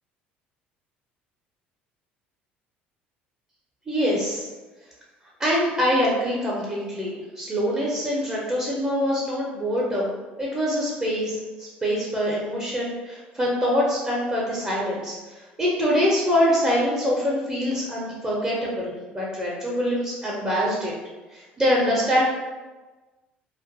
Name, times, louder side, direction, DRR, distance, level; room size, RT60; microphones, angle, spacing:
voice 1, 3.9-4.5 5.4-20.9 21.3-22.2, equal, 15° right, -5 dB, 0.6 m, -24 dB
2.4 x 2.2 x 2.6 m, 1.2 s
figure-of-eight pair, 60°, 6 cm